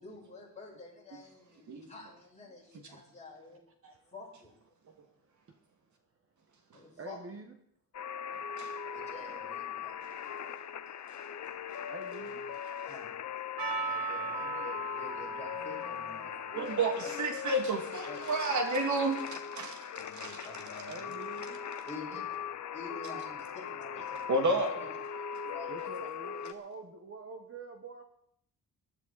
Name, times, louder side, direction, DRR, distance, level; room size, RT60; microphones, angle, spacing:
voice 1, 0.0-3.6 4.1-4.6 6.7-7.2 8.9-10.0 12.8-13.2 13.9-17.2 18.0-18.2 19.9-21.1 21.8-22.3 22.7-24.9 25.4-26.4, left 3 dB, 20° left, -3 dB, 5.7 m, -48 dB
voice 2, 7.0-7.5 11.9-12.4 20.9-21.6 25.7-28.0, right 3 dB, 40° right, 5 dB, 1.4 m, -46 dB
sound 1, 7.9-26.5, left 8 dB, 55° left, 0.8 m, -40 dB
Percussion, 13.6-18.5, right 4 dB, 85° right, 2.4 m, -40 dB
voice 3, 16.5-19.8 20.1-20.4 24.3-24.8, right 2 dB, 55° right, 4 dB, 2.2 m, -31 dB
19.5 x 11.5 x 4.1 m, 0.70 s
wide cardioid pair, 140°, 34 cm